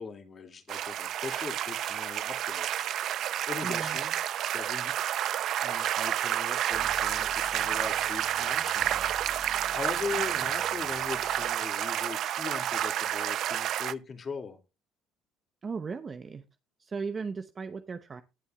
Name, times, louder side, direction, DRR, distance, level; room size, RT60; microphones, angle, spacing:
voice 1, 0.0-2.9 3.5-4.1 4.5-4.9 5.6-9.1 9.5-14.6, left 5 dB, 35° left, 5 dB, 2.3 m, -40 dB
sound 1, 0.7-13.9, right 11 dB, 60° right, 0.5 m, -30 dB
voice 2, 3.6-4.0 15.6-16.4 16.8-18.2, right 5 dB, 30° right, 8 dB, 0.8 m, -36 dB
sound 2, 6.7-11.5, equal, 20° left, 1.8 m, -49 dB
18.0 x 7.0 x 2.3 m, 0.27 s
cardioid pair, 110°, 0 cm